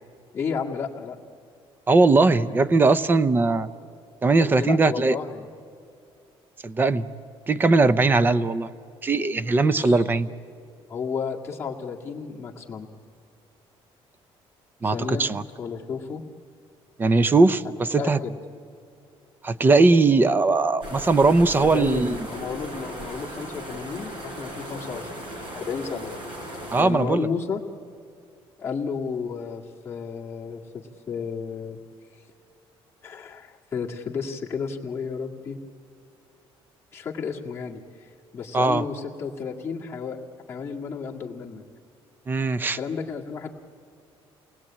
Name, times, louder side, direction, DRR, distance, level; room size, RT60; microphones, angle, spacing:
voice 1, 0.3-1.2 4.4-5.5 9.6-10.0 10.9-12.9 14.8-15.3 15.6-16.2 17.6-18.4 21.6-26.1 26.8-27.6 28.6-31.8 33.0-35.6 36.9-40.2 40.5-41.6 42.7-43.5, left 6 dB, 25° left, -2 dB, 1.9 m, -32 dB
voice 2, 1.9-3.7 4.2-5.2 6.6-7.1 7.5-8.7 9.0-10.3 14.8-15.4 17.0-18.2 19.4-22.2 26.7-27.3 38.5-38.8 42.3-42.8, right 3 dB, 20° right, 15 dB, 0.6 m, -20 dB
sound 1, 20.8-26.8, right 1 dB, 55° right, 6.0 m, -37 dB
29.0 x 20.0 x 8.8 m, 2.6 s
cardioid pair, 165°, 10 cm